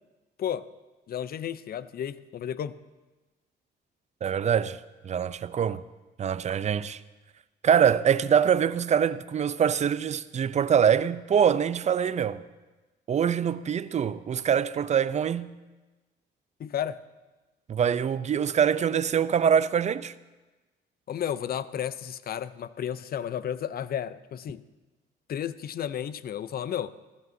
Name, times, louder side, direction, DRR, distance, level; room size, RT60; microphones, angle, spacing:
voice 1, 1.1-2.8 16.6-17.0 21.1-24.6 25.3-26.9, left 9 dB, 50° left, 0.5 m, -32 dB
voice 2, 4.2-5.8 6.2-7.0 7.6-12.4 13.1-15.6 17.7-20.1, right 8 dB, 35° right, 0.4 m, -24 dB
15.0 x 15.0 x 2.7 m
cardioid pair, 90°, 20 cm